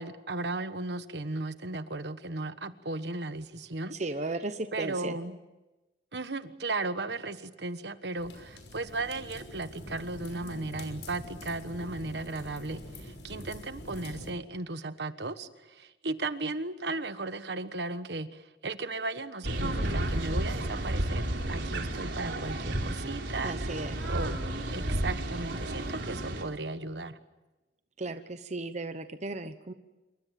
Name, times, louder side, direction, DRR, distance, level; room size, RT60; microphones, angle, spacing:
voice 1, 0.0-4.0 4.7-5.3 6.1-23.7 24.1-24.4 24.7-27.2, right 2 dB, 70° right, 11 dB, 1.3 m, -36 dB
voice 2, 3.9-5.2 23.4-24.0 28.0-29.7, right 2 dB, 40° right, 10 dB, 1.0 m, -35 dB
sound 1, 8.2-14.3, left 1 dB, 85° left, 6.0 m, -45 dB
sound 2, 19.4-26.4, right 1 dB, 85° right, 3.7 m, -32 dB
27.0 x 24.0 x 7.6 m, 1.1 s
head